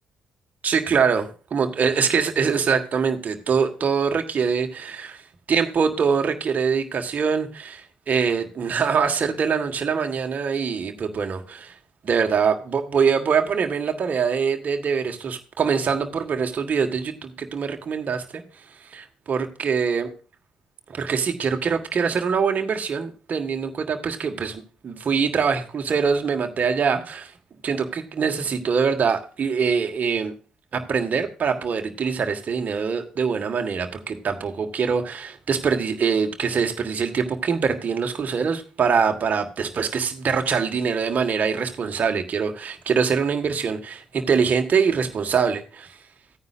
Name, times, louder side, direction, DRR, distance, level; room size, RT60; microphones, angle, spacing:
voice 1, 0.6-5.2 5.5-11.7 12.0-18.4 18.8-20.1 20.9-27.3 27.6-30.3 30.7-46.0, right 6 dB, 50° right, 5 dB, 1.6 m, -24 dB
15.0 x 9.6 x 2.5 m, 0.35 s
hypercardioid pair, 45°, 4 cm